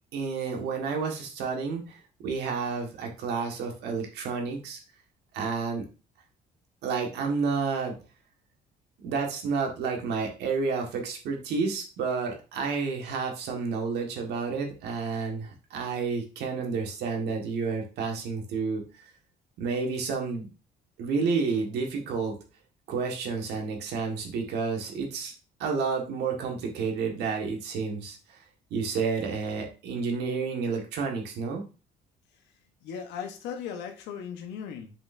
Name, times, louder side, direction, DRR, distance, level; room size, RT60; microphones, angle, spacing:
voice 1, 0.1-4.8 5.3-5.8 6.8-7.9 9.0-18.8 19.6-20.5 21.0-22.4 22.9-25.3 25.6-28.4 28.7-31.6, right 5 dB, 80° right, 2 dB, 1.8 m, -30 dB
voice 2, 32.8-34.9, left 7 dB, 90° left, 5 dB, 1.2 m, -37 dB
6.9 x 5.4 x 2.7 m, 0.33 s
cardioid pair, 110°, 17 cm